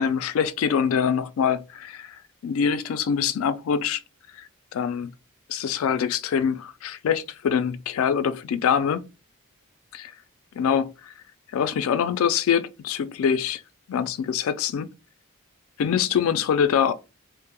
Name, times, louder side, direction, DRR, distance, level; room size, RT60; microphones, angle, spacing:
voice 1, 0.0-4.0 4.3-5.1 5.5-9.0 9.9-10.1 10.6-11.1 11.5-13.6 13.9-14.9 15.8-16.9, left 7 dB, 70° left, 0.3 m, -24 dB
2.2 x 2.0 x 2.9 m
head